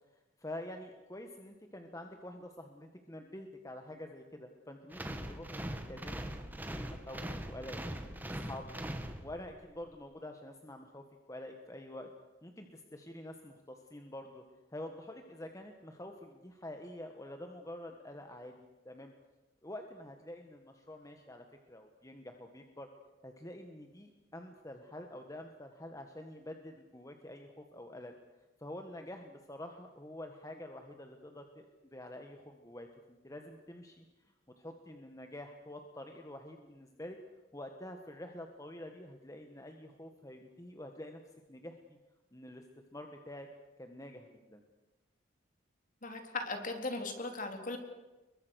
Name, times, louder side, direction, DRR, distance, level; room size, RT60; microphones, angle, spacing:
voice 1, 0.1-5.6 5.9-7.2 7.5-7.8 8.2-8.7 9.2-12.1 12.4-14.4 14.7-19.1 19.6-22.9 23.2-28.1 28.6-34.1 34.6-37.2 37.5-41.2 41.5-42.0 42.3-42.6 42.9-43.5 43.8-44.6, left 1 dB, 15° left, 4 dB, 1.7 m, -47 dB
sound 1, 4.9-9.6, right 1 dB, 10° right, 2.0 m, -41 dB
voice 2, 46.0-47.8, left 2 dB, 45° left, 5 dB, 3.8 m, -38 dB
30.0 x 23.0 x 6.6 m, 1.1 s
head